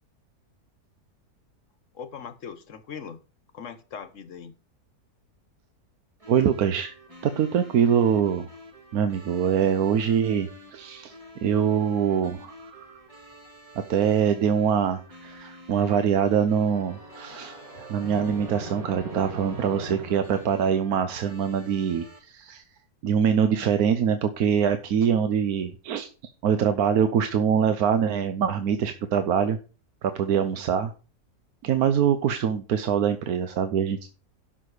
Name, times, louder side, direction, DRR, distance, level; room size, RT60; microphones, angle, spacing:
voice 1, 1.9-3.2 3.5-4.5 25.1-25.3, left 7 dB, 55° left, 11 dB, 1.3 m, -40 dB
sound 1, 6.2-22.2, left 1 dB, 20° right, 1.6 m, -48 dB
voice 2, 6.3-6.9 7.2-8.5 8.9-11.1 11.4-13.0 13.9-22.6 23.0-26.1 26.4-29.6 30.0-30.9 31.6-34.1, right 8 dB, 75° right, 9 dB, 1.2 m, -24 dB
sound 2, 16.7-21.4, right 3 dB, 50° right, 4.3 m, -41 dB
11.5 x 6.2 x 4.8 m, 0.35 s
omnidirectional pair, 1.7 m